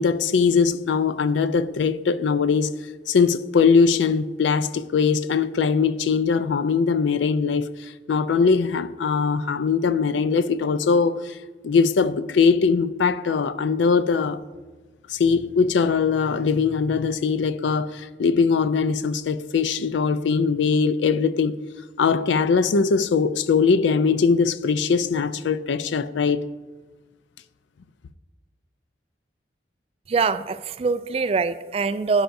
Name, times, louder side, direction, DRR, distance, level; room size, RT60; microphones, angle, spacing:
voice 1, 0.0-2.7 3.1-7.7 8.1-11.4 11.6-14.4 15.1-21.6 22.0-26.4, left 5 dB, 85° left, 0.4 m, -21 dB
voice 2, 30.1-32.2, right 4 dB, 35° right, 0.3 m, -23 dB
11.5 x 10.0 x 2.6 m
head